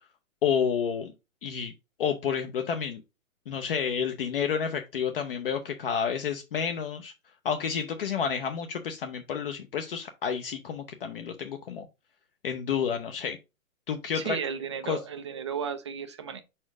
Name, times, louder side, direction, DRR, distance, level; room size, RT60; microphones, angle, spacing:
voice 1, 0.4-1.1 1.4-1.7 2.0-3.0 3.5-7.1 7.4-11.9 12.4-13.4 13.9-14.4 14.8-15.0, left 7 dB, 40° left, 0.7 m, -30 dB
voice 2, 14.1-16.4, right 7 dB, 20° right, 0.4 m, -34 dB
4.9 x 4.4 x 4.7 m
hypercardioid pair, 150°, 42 cm